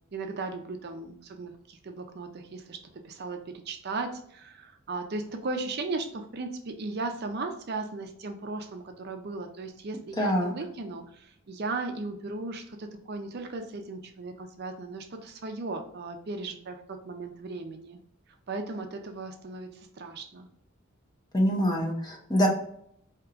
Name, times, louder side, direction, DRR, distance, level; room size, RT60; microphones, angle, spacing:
voice 1, 0.1-18.0 18.5-20.5, right 3 dB, 50° right, 5 dB, 0.5 m, -36 dB
voice 2, 10.2-10.5 21.3-22.5, equal, 20° left, 0 dB, 0.8 m, -25 dB
4.6 x 2.9 x 2.4 m, 0.68 s
head